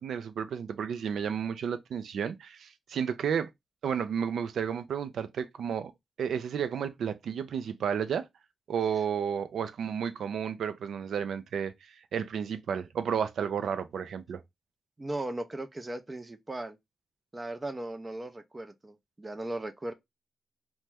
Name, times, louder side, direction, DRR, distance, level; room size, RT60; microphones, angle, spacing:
voice 1, 0.0-3.5 3.8-5.9 6.2-8.3 8.7-11.7 12.1-14.4, right 7 dB, 85° right, 0.3 m, -32 dB
voice 2, 15.0-16.8 17.3-19.9, right 1 dB, 25° right, 0.5 m, -37 dB
2.9 x 2.1 x 3.2 m
cardioid pair, 70°, 0 cm